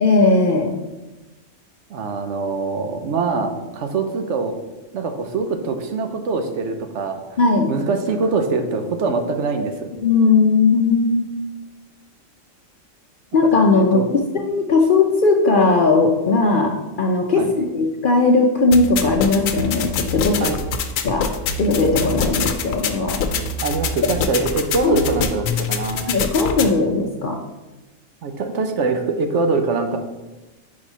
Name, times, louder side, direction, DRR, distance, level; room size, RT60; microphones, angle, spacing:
voice 1, 0.0-0.7 7.4-7.7 10.0-11.3 13.3-20.5 21.0-21.3 21.6-23.2 24.8-25.0 26.1-27.4, left 3 dB, 55° left, 2 dB, 0.6 m, -18 dB
voice 2, 1.9-4.5 4.9-7.2 7.7-9.9 13.4-13.5 13.8-14.1 17.3-17.5 20.4-20.6 23.6-26.0 28.2-30.0, right 4 dB, 65° right, 6 dB, 0.9 m, -23 dB
sound 1, 18.7-26.7, left 5 dB, 85° left, 1.0 m, -25 dB
4.8 x 4.4 x 5.5 m, 1.1 s
omnidirectional pair, 1.4 m